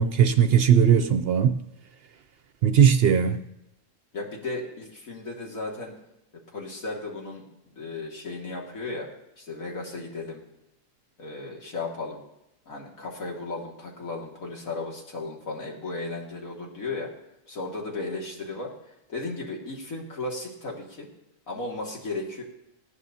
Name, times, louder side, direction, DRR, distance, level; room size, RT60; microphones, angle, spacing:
voice 1, 0.0-1.6 2.6-3.4, right 8 dB, 60° right, 0.7 m, -19 dB
voice 2, 4.1-6.0 6.5-7.4 7.7-9.1 9.4-10.4 11.2-12.2 12.7-17.1 17.5-18.7 19.1-21.1 21.5-22.4, left 3 dB, 90° left, 2.6 m, -35 dB
19.0 x 14.0 x 2.8 m
omnidirectional pair, 1.4 m